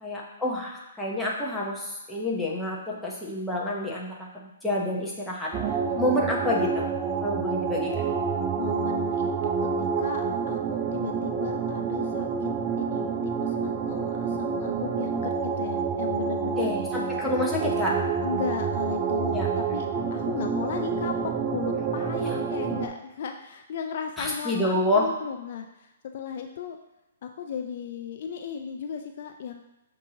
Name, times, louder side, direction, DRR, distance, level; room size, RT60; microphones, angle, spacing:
voice 1, 0.0-5.5 6.0-6.9 7.2-7.9 16.6-18.0 19.3-19.5 19.8-19.9 21.9-22.4 24.2-25.1, left 1 dB, 5° left, -5 dB, 0.7 m, -28 dB
sound 1, 5.5-22.9, right 6 dB, 20° right, 0.4 m, -28 dB
voice 2, 5.9-6.2 8.5-12.5 12.8-16.7 18.2-19.5 19.7-26.8 27.2-29.6, left 7 dB, 50° left, 5 dB, 0.3 m, -36 dB
6.2 x 2.6 x 2.7 m, 0.98 s
hypercardioid pair, 155°, 0 cm